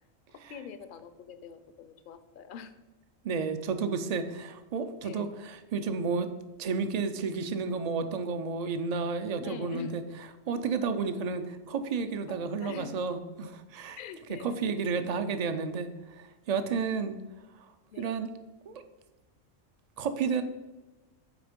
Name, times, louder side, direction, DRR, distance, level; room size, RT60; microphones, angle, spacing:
voice 1, 0.5-2.7 5.0-5.3 9.4-9.9 12.3-13.0 14.0-14.6 17.9-18.2, left 7 dB, 55° left, 11 dB, 0.6 m, -44 dB
voice 2, 3.2-6.3 6.6-10.0 10.5-14.0 14.4-17.1 18.0-18.3 18.7-18.8 20.0-20.4, right 5 dB, 55° right, 9 dB, 0.4 m, -31 dB
8.2 x 4.3 x 5.1 m, 1.1 s
omnidirectional pair, 1.4 m